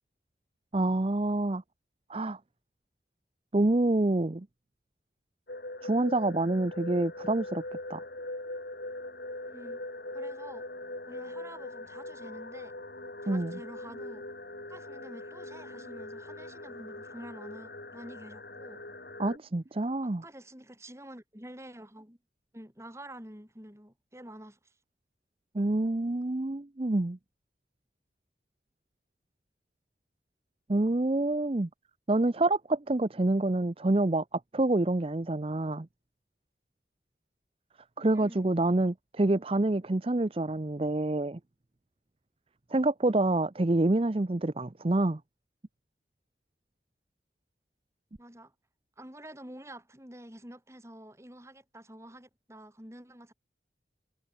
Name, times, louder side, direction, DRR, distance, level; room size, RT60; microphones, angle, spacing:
voice 1, 0.7-1.6 2.1-2.4 3.5-4.5 5.8-7.6 7.9-8.0 13.3-13.6 19.2-20.2 25.5-27.2 30.7-31.7 32.1-35.9 38.0-41.4 42.7-45.2, right 2 dB, 30° right, 0.6 m, -27 dB
sound 1, 5.5-19.4, left 2 dB, 60° left, 2.6 m, -41 dB
voice 2, 9.5-9.8 10.1-10.7 11.0-12.7 13.2-14.3 14.7-18.8 20.0-22.2 22.5-24.7 38.1-38.5 48.2-48.5 49.0-53.3, right 1 dB, 15° right, 5.7 m, -48 dB
head